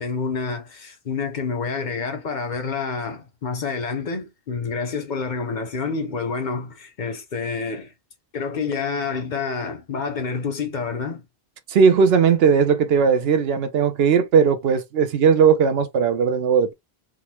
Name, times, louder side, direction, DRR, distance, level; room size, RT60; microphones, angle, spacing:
voice 1, 0.0-7.9 8.3-11.2, left 5 dB, 55° left, 0.7 m, -28 dB
voice 2, 11.7-16.7, right 6 dB, 75° right, 0.8 m, -18 dB
3.6 x 2.2 x 2.9 m
omnidirectional pair, 1.1 m